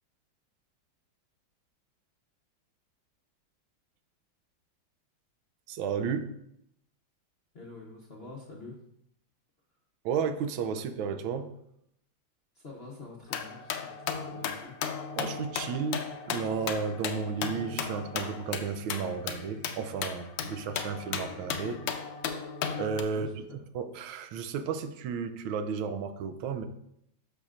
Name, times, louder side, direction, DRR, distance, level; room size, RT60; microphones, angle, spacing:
voice 1, 5.7-6.3 10.0-11.5 15.2-21.8 22.8-23.3 23.7-26.7, right 6 dB, 90° right, 9 dB, 1.4 m, -33 dB
voice 2, 7.5-8.8 12.5-14.8 23.1-23.6, left 3 dB, 50° left, -2 dB, 0.7 m, -46 dB
sound 1, 13.3-23.0, left 7 dB, 85° left, 1.4 m, -35 dB
8.5 x 6.2 x 2.5 m, 0.78 s
omnidirectional pair, 2.1 m